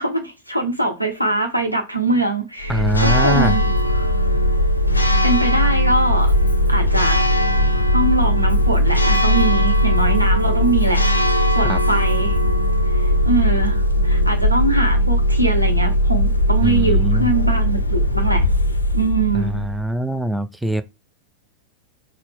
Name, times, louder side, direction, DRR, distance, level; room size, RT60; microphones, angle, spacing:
voice 1, 0.0-3.6 4.9-6.3 6.7-7.2 7.9-11.0 11.5-12.4 13.2-18.4 18.9-19.6, right 2 dB, 90° right, 0.8 m, -22 dB
Church bell, 2.6-19.9, left 1 dB, 80° left, 0.4 m, -18 dB
voice 2, 2.7-3.6 11.7-11.8 16.6-17.3 19.3-20.8, right 1 dB, 5° right, 0.3 m, -23 dB
4.0 x 2.0 x 3.6 m
figure-of-eight pair, 90°, 0 cm